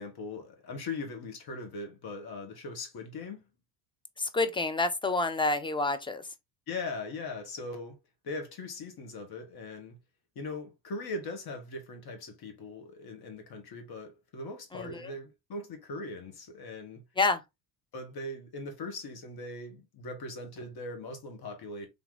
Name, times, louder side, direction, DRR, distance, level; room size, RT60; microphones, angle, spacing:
voice 1, 0.0-3.4 6.7-8.0 8.2-10.0 10.4-17.0 17.9-21.9, left 2 dB, 45° left, 1.7 m, -40 dB
voice 2, 4.2-6.3 14.7-15.1 17.2-17.4, left 3 dB, 10° left, 0.7 m, -28 dB
3.6 x 3.0 x 3.8 m
hypercardioid pair, 65°, 50 cm